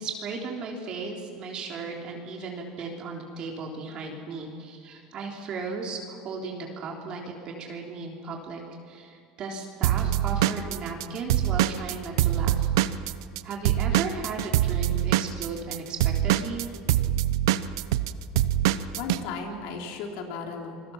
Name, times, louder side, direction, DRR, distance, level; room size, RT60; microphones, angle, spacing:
voice 1, 0.0-8.6 8.9-12.7 13.4-16.7, right 4 dB, 45° right, 0 dB, 3.5 m, -36 dB
Drum kit / Drum, 9.8-13.4 13.6-19.2, right 13 dB, 85° right, 0.8 m, -24 dB
voice 2, 18.9-20.9, left 5 dB, 75° left, 1 dB, 3.9 m, -35 dB
28.5 x 21.0 x 5.9 m, 2.5 s
supercardioid pair, 120°, 2 cm